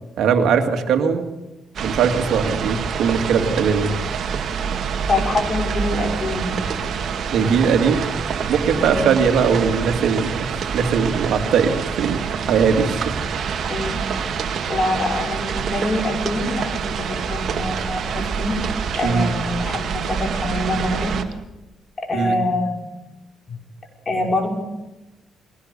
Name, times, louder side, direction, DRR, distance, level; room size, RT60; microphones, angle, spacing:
voice 1, 0.2-1.3 1.8-3.9 7.3-8.1 8.5-10.5 10.7-11.7 12.0-12.2 12.5-13.0 19.0-19.3 22.1-22.4, right 6 dB, 75° right, 6 dB, 2.4 m, -19 dB
sound 1, 1.7-21.2, right 6 dB, 60° right, 2.0 m, -26 dB
voice 2, 5.1-6.7 8.7-9.1 13.7-14.2 14.7-18.6 18.9-21.1 22.1-22.9 23.5-23.6 24.1-24.6, left 2 dB, 35° left, 2 dB, 5.7 m, -25 dB
22.0 x 17.5 x 6.9 m, 1.0 s
cardioid pair, 90°, 0 cm